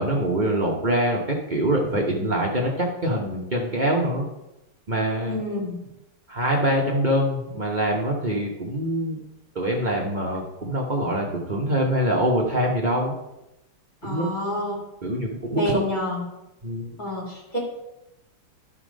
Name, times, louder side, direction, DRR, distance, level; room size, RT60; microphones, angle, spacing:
voice 1, 0.0-4.3 4.9-5.4 6.3-9.2 9.5-13.1 14.0-14.3 15.0-15.8 16.6-16.9, right 1 dB, 50° right, -2 dB, 0.5 m, -24 dB
voice 2, 5.3-5.8 14.0-14.8 15.5-16.2 17.0-17.6, left 1 dB, 20° left, -3 dB, 2.2 m, -28 dB
11.5 x 4.3 x 5.1 m, 0.91 s
omnidirectional pair, 2.4 m